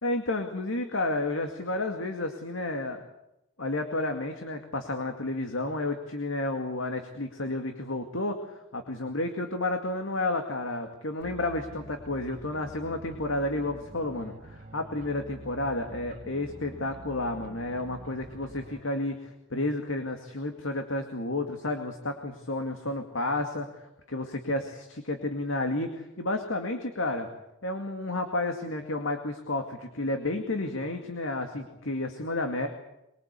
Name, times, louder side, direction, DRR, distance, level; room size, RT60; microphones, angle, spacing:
voice 1, 0.0-3.0 3.6-27.3 27.6-32.7, left 2 dB, 80° left, 5 dB, 2.2 m, -31 dB
sound 1, 11.2-18.8, right 1 dB, 40° right, 2.3 m, -47 dB
23.5 x 23.0 x 8.3 m, 0.86 s
head